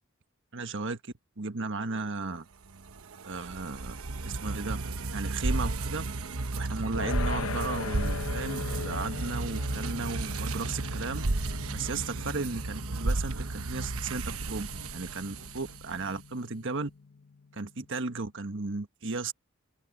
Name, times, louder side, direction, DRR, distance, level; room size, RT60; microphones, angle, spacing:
voice 1, 0.5-2.5 3.2-4.8 5.1-6.1 6.5-11.2 11.7-16.9 17.5-19.3, right 3 dB, 60° right, 1.4 m, -35 dB
sound 1, 2.7-16.1, right 2 dB, 90° right, 1.1 m, -33 dB
sound 2, 6.9-17.9, left 5 dB, 75° left, 0.9 m, -41 dB
open air
head